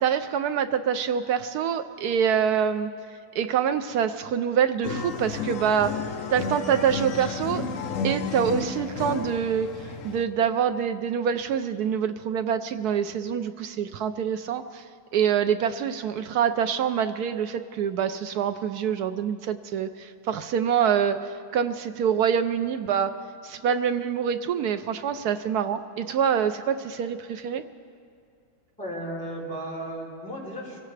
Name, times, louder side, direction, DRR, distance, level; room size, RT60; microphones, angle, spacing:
voice 1, 0.0-2.9 3.3-5.9 6.3-7.6 8.0-9.7 10.0-14.8 15.1-23.1 23.4-27.6, right 8 dB, 75° right, 9 dB, 0.9 m, -25 dB
sound 1, 4.8-10.2, left 4 dB, 60° left, 0.8 m, -32 dB
voice 2, 28.8-30.8, right 1 dB, 5° left, -6 dB, 3.6 m, -34 dB
24.0 x 16.5 x 3.2 m, 2.3 s
omnidirectional pair, 2.1 m